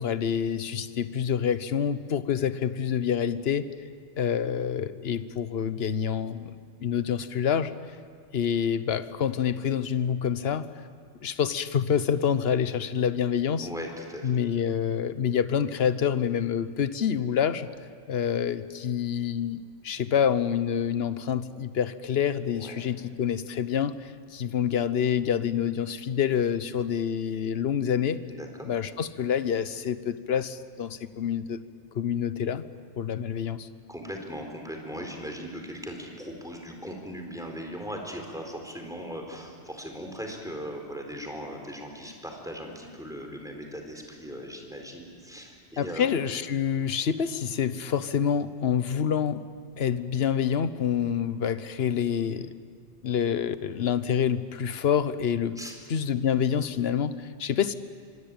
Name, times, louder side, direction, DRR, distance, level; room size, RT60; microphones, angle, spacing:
voice 1, 0.0-3.7 4.2-6.5 6.8-7.7 8.3-10.7 11.2-13.7 14.2-17.7 18.1-28.2 28.6-31.6 31.9-32.6 33.0-33.7 45.8-49.5 49.8-52.5 53.0-55.6 55.9-57.7, left 8 dB, 65° left, 13 dB, 1.2 m, -27 dB
voice 2, 13.6-14.3 22.5-22.9 28.3-28.7 33.9-46.1 55.6-55.8, equal, 5° right, 2 dB, 4.3 m, -39 dB
25.5 x 25.0 x 9.0 m, 2.1 s
omnidirectional pair, 1.2 m